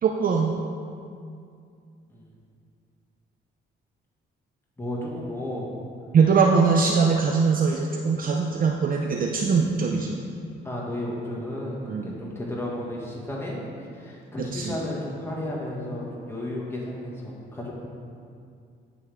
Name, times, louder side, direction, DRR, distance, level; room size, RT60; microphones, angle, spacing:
voice 1, 0.0-0.6 6.1-10.2 11.9-12.1 14.4-14.7, right 5 dB, 45° right, 1 dB, 0.5 m, -22 dB
voice 2, 4.8-5.7 10.6-13.6 13.9-17.7, left 1 dB, 10° left, -5 dB, 1.7 m, -33 dB
10.5 x 3.6 x 3.5 m, 2.3 s
cardioid pair, 90°, 20 cm